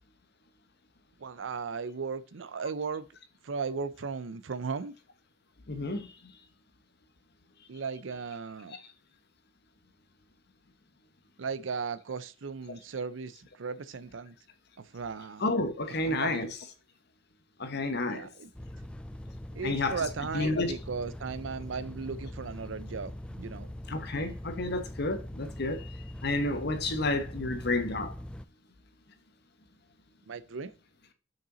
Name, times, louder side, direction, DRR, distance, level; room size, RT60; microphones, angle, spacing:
voice 1, 1.2-3.1 3.4-4.9 7.7-8.7 11.4-14.4 14.8-15.4 16.1-16.4 18.1-18.5 19.5-23.7 30.3-30.7, right 5 dB, 85° right, 0.6 m, -36 dB
voice 2, 5.7-6.3 8.7-8.8 15.4-16.6 17.6-18.3 19.6-20.0 20.3-20.7 23.9-28.1, left 2 dB, 60° left, 1.2 m, -31 dB
sound 1, 18.5-28.4, left 1 dB, 5° left, 0.3 m, -42 dB
6.0 x 5.6 x 3.9 m
head